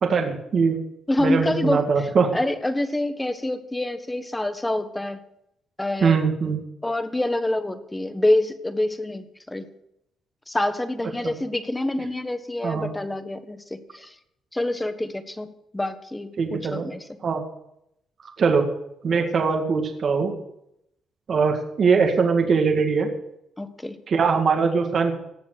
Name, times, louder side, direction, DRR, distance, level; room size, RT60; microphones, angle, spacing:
voice 1, 0.0-0.8 1.2-2.3 6.0-6.6 11.2-11.3 12.6-12.9 16.4-16.9 17.2-17.4 18.4-18.6 19.0-20.3 21.3-23.1 24.1-25.1, right 5 dB, 50° right, 3 dB, 2.1 m, -21 dB
voice 2, 1.1-1.9 2.3-5.2 5.8-6.2 6.8-9.7 10.5-14.1 14.5-17.0 23.6-24.0, left 1 dB, 10° left, 9 dB, 1.4 m, -26 dB
18.0 x 7.3 x 6.6 m, 0.79 s
cardioid pair, 90°, 0 cm